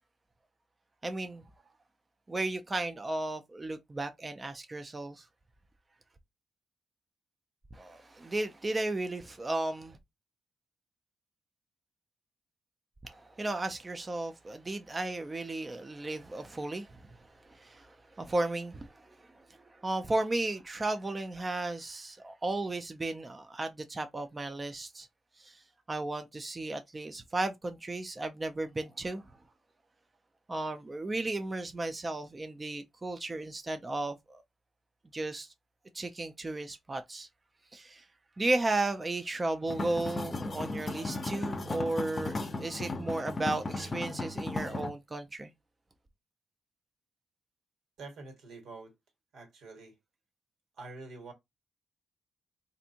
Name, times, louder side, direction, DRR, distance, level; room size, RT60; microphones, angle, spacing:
voice 1, 1.0-1.4 2.3-5.2 7.7-10.0 13.0-17.1 17.4-19.5 19.8-25.1 25.4-25.6 25.9-29.2 30.5-34.4 35.1-35.5 35.9-37.3 37.7-38.0 38.4-45.5, right 2 dB, 25° right, 0.4 m, -34 dB
sound 1, 39.7-44.9, left 2 dB, 35° left, 0.6 m, -36 dB
voice 2, 48.0-48.9 49.3-50.0 50.8-51.3, right 3 dB, 85° right, 1.5 m, -46 dB
3.3 x 2.6 x 2.8 m
cardioid pair, 105°, 0 cm